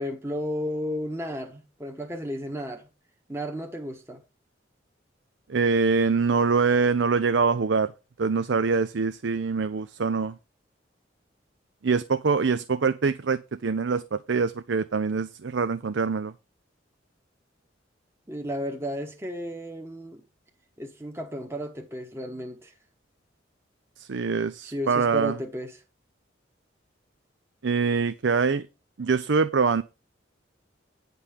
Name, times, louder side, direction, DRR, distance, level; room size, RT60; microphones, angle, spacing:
voice 1, 0.0-2.9 3.3-4.2 18.3-20.2 20.8-22.7 24.6-25.8, equal, 15° right, 1.2 m, -33 dB
voice 2, 5.5-7.9 8.2-10.3 11.8-16.3 24.0-25.3 27.6-28.7 29.0-29.8, right 5 dB, 70° right, 0.6 m, -24 dB
9.9 x 5.4 x 5.8 m
head